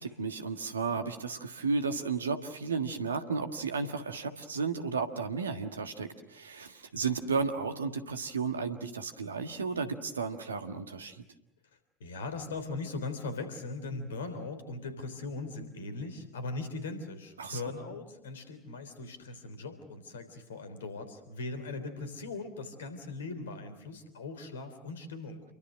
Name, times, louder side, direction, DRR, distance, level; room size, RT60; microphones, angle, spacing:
voice 1, 0.0-11.2 17.4-17.6, right 5 dB, 80° right, 7 dB, 1.6 m, -33 dB
voice 2, 12.0-25.4, left 3 dB, 75° left, 9 dB, 3.5 m, -39 dB
28.5 x 23.5 x 6.4 m, 0.82 s
figure-of-eight pair, 70°, 0 cm